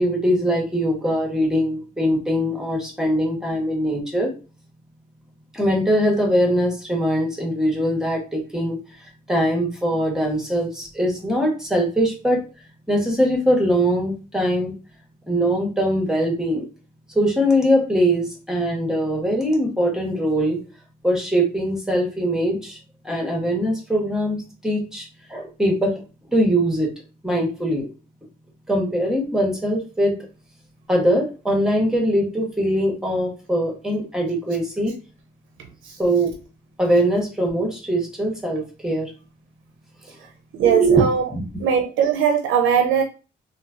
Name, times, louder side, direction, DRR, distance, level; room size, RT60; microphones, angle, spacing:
voice 1, 0.0-4.3 5.5-8.8 9.3-12.4 12.9-14.7 15.3-16.6 17.1-20.6 21.0-22.8 23.0-25.9 26.3-26.9 27.2-27.9 28.7-30.2 30.9-34.9 36.0-36.3 36.8-39.1 40.6-41.0 41.3-41.4, equal, 5° right, 0 dB, 1.1 m, -21 dB
voice 2, 40.5-41.3 41.6-43.0, right 8 dB, 80° right, 4 dB, 0.5 m, -20 dB
3.0 x 2.2 x 2.4 m, 0.33 s
cardioid pair, 90°, 20 cm